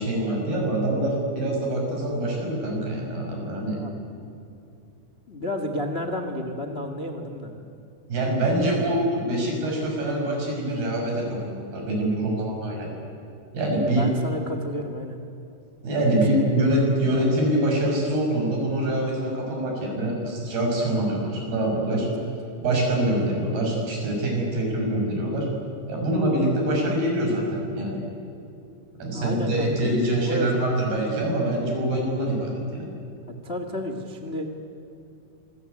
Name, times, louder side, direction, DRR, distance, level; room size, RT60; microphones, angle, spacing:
voice 1, 0.0-3.8 8.1-12.9 13.5-14.1 15.8-22.1 22.6-25.5 25.9-28.0 29.0-32.9, right 1 dB, 85° right, 0 dB, 8.2 m, -25 dB
voice 2, 5.3-7.6 8.5-9.1 13.9-15.2 16.3-16.7 21.9-22.3 29.1-30.6 33.4-34.5, left 1 dB, 85° left, 6 dB, 0.5 m, -32 dB
26.5 x 21.5 x 9.7 m, 2.7 s
omnidirectional pair, 4.4 m